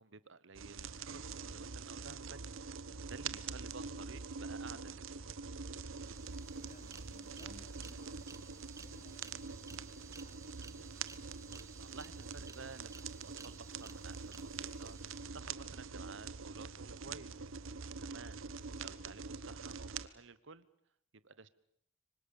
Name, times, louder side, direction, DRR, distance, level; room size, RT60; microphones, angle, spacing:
voice 1, 0.0-2.4 2.7-5.4 11.1-17.6 18.0-18.4 18.8-20.7 21.2-21.5, right 4 dB, 65° right, 17 dB, 1.1 m, -53 dB
sound 1, 0.5-20.1, right 5 dB, 85° right, 1.1 m, -45 dB
sound 2, 5.2-5.3 5.5-16.3, right 4 dB, 15° right, 1.0 m, -58 dB
voice 2, 6.5-10.4, left 1 dB, 40° left, 7 dB, 3.4 m, -62 dB
25.5 x 24.5 x 7.1 m, 0.71 s
head